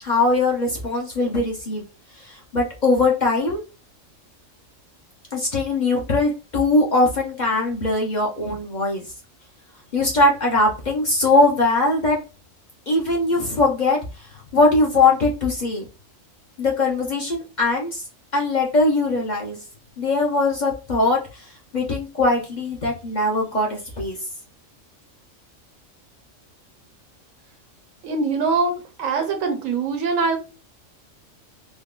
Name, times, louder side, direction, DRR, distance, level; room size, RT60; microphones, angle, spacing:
voice 1, 0.0-1.8 2.2-3.6 5.3-9.0 9.9-12.2 12.9-14.0 14.5-15.9 16.6-18.0 18.3-19.6 20.0-24.2, left 2 dB, 45° left, -1 dB, 0.7 m, -21 dB
voice 2, 28.0-30.4, right 4 dB, 85° right, 6 dB, 1.2 m, -23 dB
3.6 x 2.2 x 2.3 m, 0.31 s
omnidirectional pair, 1.4 m